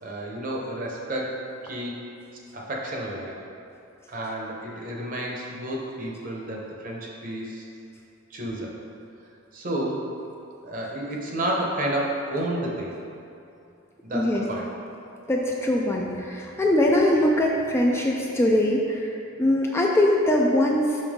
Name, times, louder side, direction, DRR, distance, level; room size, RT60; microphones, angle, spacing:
voice 1, 0.0-2.0 2.5-3.4 4.1-7.7 8.3-8.8 9.5-10.2 10.6-12.9 14.0-14.7, right 1 dB, 40° right, -2 dB, 0.9 m, -31 dB
voice 2, 15.3-19.1 19.4-21.0, left 1 dB, 15° left, -1 dB, 0.4 m, -22 dB
5.8 x 5.4 x 3.6 m, 2.6 s
head